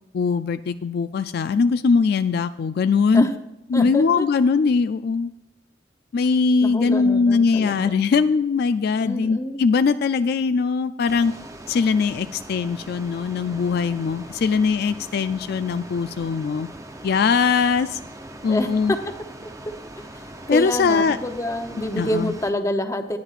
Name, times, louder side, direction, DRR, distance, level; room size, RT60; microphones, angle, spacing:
voice 1, 0.1-3.3 3.7-5.3 6.1-11.3 11.7-16.7 17.0-18.0 18.4-18.9 20.5-21.2 22.0-22.3, left 5 dB, 60° left, 11 dB, 0.3 m, -21 dB
voice 2, 3.7-4.3 6.6-8.0 9.0-9.6 18.5-19.0 19.4-19.5 20.1-20.2 20.5-23.2, left 1 dB, 15° left, 7 dB, 0.8 m, -27 dB
sound 1, 11.1-22.5, right 1 dB, 20° right, 0.8 m, -41 dB
19.0 x 9.5 x 2.5 m, 0.89 s
head